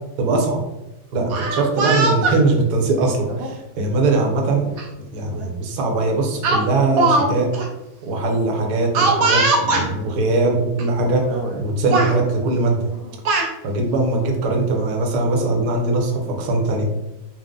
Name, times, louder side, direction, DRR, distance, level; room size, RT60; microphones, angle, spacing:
voice 1, 0.2-0.6 1.1-4.7 5.1-7.5 8.1-11.3 11.5-12.8 13.6-16.9, right 2 dB, 60° right, 1 dB, 1.2 m, -21 dB
Speech, 1.2-2.4 3.3-3.5 4.8-4.9 5.3-5.5 6.4-7.3 7.5-7.7 8.9-9.9 10.8-10.9 11.3-11.6 11.9-12.2 12.9-13.5, right 3 dB, 80° right, 0.7 m, -20 dB
4.8 x 2.1 x 3.7 m, 0.95 s
omnidirectional pair, 2.3 m